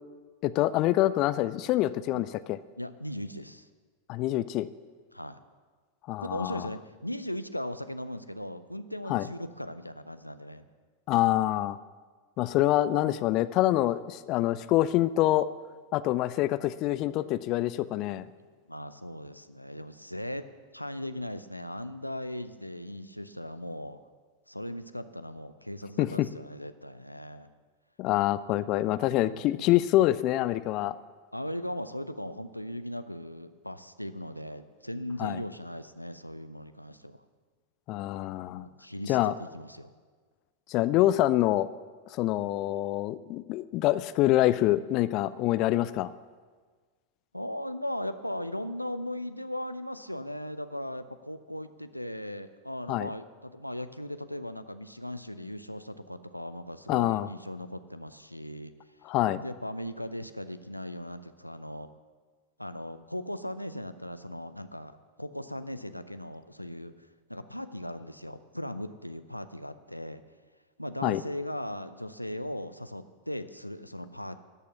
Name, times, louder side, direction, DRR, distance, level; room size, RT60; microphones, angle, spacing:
voice 1, 0.4-2.6 4.1-4.7 6.1-6.6 9.1-9.3 11.1-11.8 12.4-15.5 15.9-18.3 26.0-26.3 28.0-31.0 35.2-35.4 37.9-38.7 39.1-39.3 40.7-41.7 42.1-46.1 52.9-53.1 56.9-57.3 59.1-59.4 71.0-71.2, left 15 dB, 40° left, 16 dB, 0.4 m, -26 dB
voice 2, 2.8-3.7 5.1-5.4 6.2-10.6 18.7-20.5 20.7-24.0 24.5-27.5 29.1-29.7 31.3-37.2 38.5-39.9 47.3-58.7 59.4-61.9 62.6-66.9 67.3-70.2 70.8-74.4, left 1 dB, 90° left, 10 dB, 0.6 m, -38 dB
13.5 x 8.4 x 7.0 m, 1.5 s
figure-of-eight pair, 90°, 0 cm